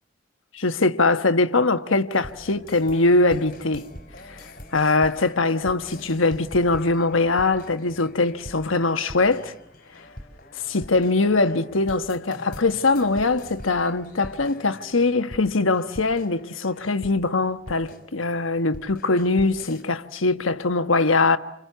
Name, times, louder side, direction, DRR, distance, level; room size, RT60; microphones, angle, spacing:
voice 1, 0.5-3.9 4.3-4.4 4.7-9.5 10.7-21.4, left 3 dB, 90° left, 1.4 m, -22 dB
sound 1, 2.1-19.8, left 1 dB, 45° left, 4.3 m, -43 dB
28.5 x 28.0 x 6.9 m
head